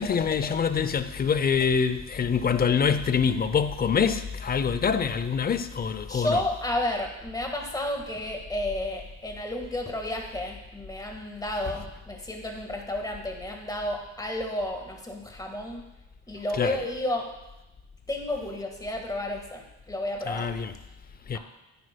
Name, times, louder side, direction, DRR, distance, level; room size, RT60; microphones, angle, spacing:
voice 1, 0.0-6.4 16.6-16.7 20.3-20.7 21.3-21.4, left 6 dB, 30° left, 0.5 m, -25 dB
voice 2, 6.1-15.9 16.3-17.3 18.1-20.6 21.3-21.4, left 1 dB, 10° left, 1.6 m, -32 dB
9.8 x 9.5 x 2.2 m
cardioid pair, 90°, 30 cm